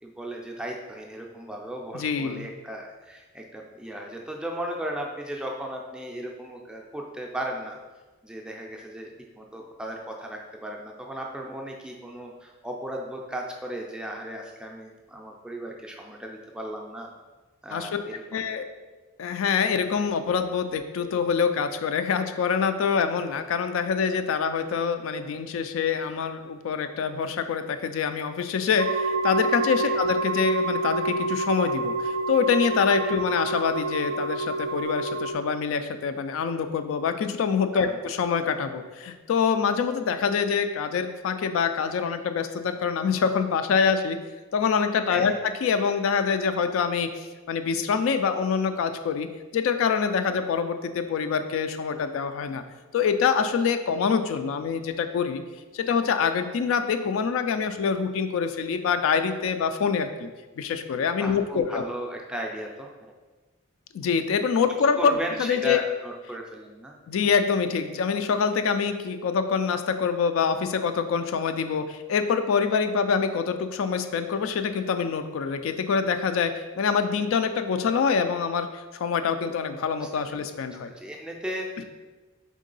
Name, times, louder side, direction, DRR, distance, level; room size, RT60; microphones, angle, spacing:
voice 1, 0.0-7.8 8.2-9.1 9.4-17.1 17.6-18.4 29.8-30.0 37.7-38.0 45.1-45.4 61.2-63.1 65.0-67.0 80.0-80.1 81.0-81.8, right 1 dB, 5° right, 0 dB, 0.4 m, -36 dB
voice 2, 1.9-2.5 17.7-17.9 18.3-18.6 19.2-44.2 44.5-49.3 49.5-52.6 52.9-55.4 55.7-60.3 60.6-61.8 63.9-65.8 67.1-80.9, left 6 dB, 65° left, 8 dB, 0.3 m, -25 dB
sound 1, 28.8-35.3, right 3 dB, 80° right, 0.4 m, -28 dB
3.6 x 3.6 x 3.9 m, 1.3 s
head